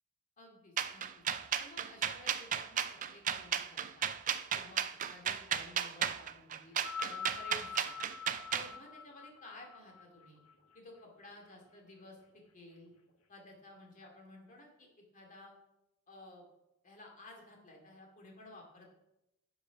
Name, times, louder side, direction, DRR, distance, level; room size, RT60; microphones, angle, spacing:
voice 1, 0.4-1.2 1.6-4.1 4.5-6.7 7.0-8.0 8.5-10.4 10.7-12.2 12.5-12.9 13.3-14.9 15.1-15.5 16.1-16.4 16.8-18.9, left 2 dB, 35° left, 1 dB, 2.6 m, -54 dB
sound 1, 0.8-8.7, right 8 dB, 40° right, 0.5 m, -34 dB
sound 2, 6.7-11.3 12.2-12.3, left 6 dB, 85° left, 1.5 m, -45 dB
10.5 x 7.1 x 5.2 m, 0.89 s
head